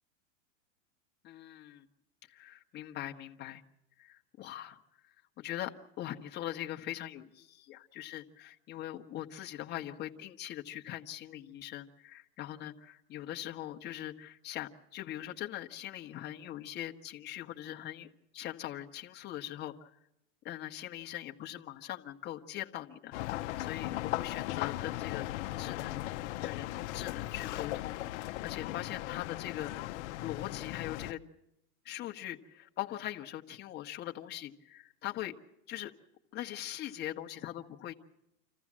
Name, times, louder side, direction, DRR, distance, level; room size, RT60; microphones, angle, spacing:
voice 1, 1.2-1.9 2.3-3.6 4.0-4.8 5.0-5.7 6.0-18.1 18.3-20.0 20.4-25.3 25.6-29.7 30.2-31.2 31.8-35.3 35.7-35.9 36.3-37.9, left 13 dB, 25° left, 2 dB, 1.1 m, -41 dB
sound 1, 23.1-31.1, left 16 dB, 60° left, 0.8 m, -37 dB
26.5 x 15.0 x 7.4 m, 0.86 s
supercardioid pair, 135°, 40 cm